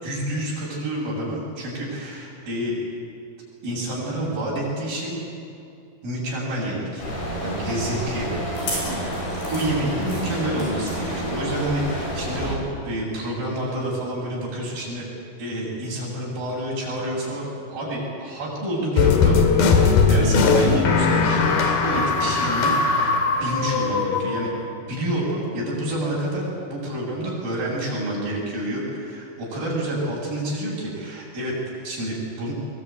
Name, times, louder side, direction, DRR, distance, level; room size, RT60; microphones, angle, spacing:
voice 1, 0.0-2.7 3.6-5.2 6.0-7.0 7.4-8.4 8.8-9.1 9.5-15.1 15.4-21.4 21.8-22.7 23.4-24.5 24.9-31.6 31.8-32.5, right 1 dB, 60° right, -5 dB, 8.8 m, -28 dB
sound 1, 7.0-12.5, equal, 80° left, 10.0 m, -29 dB
sound 2, 19.0-24.6, left 4 dB, 65° left, 4.0 m, -19 dB
22.5 x 22.5 x 9.4 m, 2.6 s
omnidirectional pair, 4.7 m